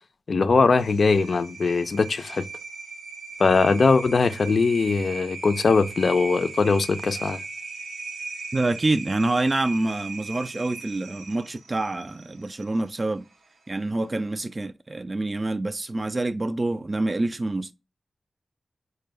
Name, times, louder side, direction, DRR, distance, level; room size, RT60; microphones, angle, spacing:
voice 1, 0.3-2.4 3.4-7.4, left 4 dB, 75° left, 0.4 m, -21 dB
sound 1, 0.8-12.8, right 4 dB, 90° right, 0.6 m, -38 dB
voice 2, 8.5-13.3 13.7-17.7, right 2 dB, 40° right, 0.3 m, -26 dB
4.1 x 2.2 x 3.3 m
cardioid pair, 45°, 0 cm